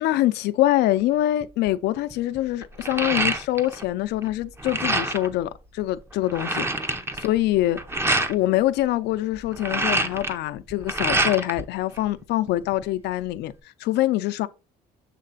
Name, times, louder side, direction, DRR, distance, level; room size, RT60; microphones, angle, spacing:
voice 1, 0.0-7.8 8.3-13.5 13.8-14.5, left 15 dB, 80° left, 0.5 m, -24 dB
sound 1, 1.4-1.7 2.1-3.9 4.1-5.3 5.8-5.9 6.1-8.3 9.4-11.6 12.0-12.8, right 2 dB, 15° right, 0.7 m, -26 dB
7.5 x 3.3 x 4.0 m
cardioid pair, 110°, 17 cm